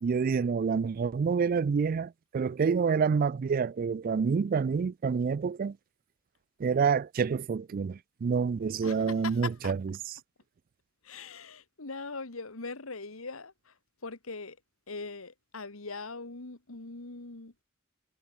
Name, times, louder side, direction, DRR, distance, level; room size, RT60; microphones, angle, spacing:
voice 1, 0.0-5.8 6.6-9.9, right 5 dB, 45° right, 0.3 m, -28 dB
voice 2, 8.8-9.7 11.0-13.7 14.0-14.6 14.9-17.5, left 3 dB, 85° left, 1.9 m, -41 dB
head